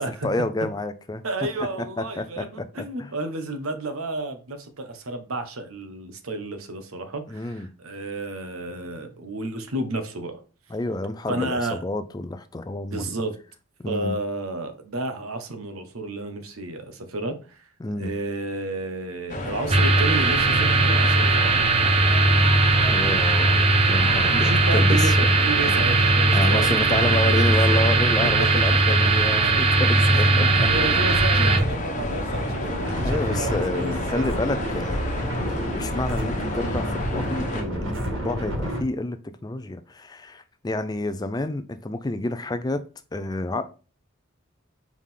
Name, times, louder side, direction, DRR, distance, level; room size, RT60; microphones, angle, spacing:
voice 1, 0.2-1.2 2.0-3.1 7.3-7.7 10.7-13.1 13.8-14.1 17.8-18.1 22.9-25.8 26.3-30.7 31.4-31.7 33.0-42.8 43.1-43.6, left 2 dB, 20° left, 0.4 m, -29 dB
voice 2, 1.2-10.4 11.3-11.8 12.9-13.4 13.9-17.6 17.9-21.7 24.3-25.1 25.4-27.8 28.4-28.5 30.1-34.3, right 2 dB, 85° right, 1.1 m, -31 dB
sound 1, 19.3-37.6, left 1 dB, 35° left, 1.1 m, -31 dB
sound 2, 19.7-31.6, right 3 dB, 30° right, 0.7 m, -19 dB
sound 3, 30.5-38.8, equal, 70° right, 2.1 m, -30 dB
4.9 x 3.8 x 5.5 m
head